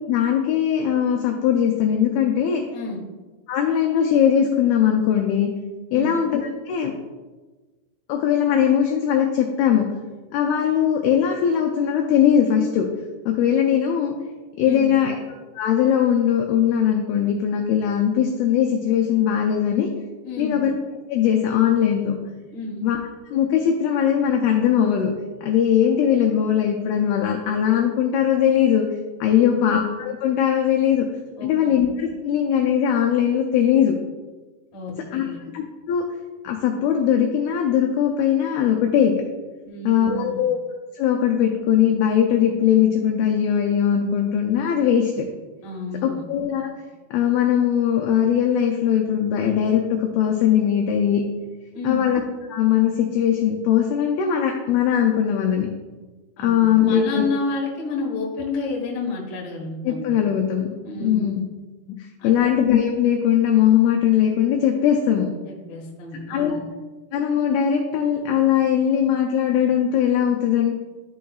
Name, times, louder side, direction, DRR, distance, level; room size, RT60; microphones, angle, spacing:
voice 1, 0.1-2.6 3.5-5.5 5.9-6.9 8.1-9.9 10.3-12.9 13.3-14.1 14.6-15.2 15.6-19.9 20.4-20.7 21.1-22.1 22.8-23.0 23.3-25.1 25.4-28.9 29.2-31.1 31.4-34.0 35.1-35.2 35.5-36.1 36.4-39.2 39.9-40.6 40.9-45.3 46.0-46.7 47.1-51.2 51.8-52.2 52.5-55.7 56.4-57.2 59.8-60.7 61.0-61.4 62.2-65.3 66.3-66.6 67.1-70.7, left 9 dB, 85° left, 2 dB, 2.2 m, -20 dB
voice 2, 14.6-15.1 20.2-20.6 22.5-22.8 29.3-29.6 31.4-31.7 34.7-35.4 39.6-40.4 45.6-46.2 51.7-52.1 56.4-60.2 60.8-61.4 62.2-62.5 65.4-66.6, left 3 dB, 70° left, -2 dB, 1.5 m, -30 dB
11.5 x 4.6 x 2.3 m, 1.2 s
omnidirectional pair, 5.1 m